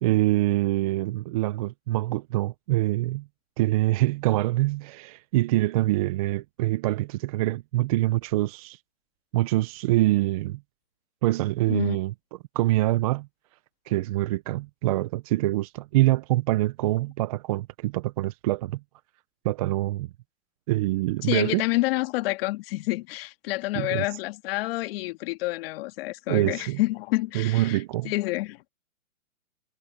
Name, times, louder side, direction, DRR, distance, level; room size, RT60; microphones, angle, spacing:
voice 1, 0.0-3.2 3.6-8.8 9.3-10.6 11.2-12.1 12.6-13.3 13.9-18.8 19.4-20.1 20.7-21.6 23.7-24.0 26.3-26.8 27.3-28.1, right 17 dB, 30° right, 0.5 m, -25 dB
voice 2, 21.2-27.8 28.0-28.6, left 20 dB, 45° left, 1.8 m, -28 dB
hypercardioid pair, 145°, 41 cm